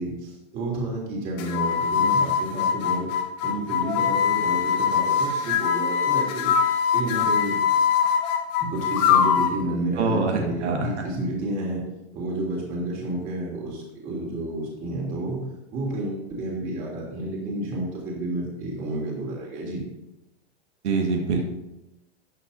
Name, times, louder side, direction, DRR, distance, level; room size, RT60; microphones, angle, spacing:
voice 1, 0.0-3.1 3.4-6.5 6.9-7.6 8.6-11.8 12.1-15.4 15.7-19.8, right 2 dB, 25° right, -2 dB, 3.1 m, -30 dB
sound 1, 1.4-9.6, left 7 dB, 40° left, 1.2 m, -22 dB
voice 2, 10.0-10.9 20.8-21.4, right 4 dB, 80° right, 1 dB, 1.8 m, -24 dB
13.0 x 9.3 x 2.7 m, 0.93 s
supercardioid pair, 165°, 34 cm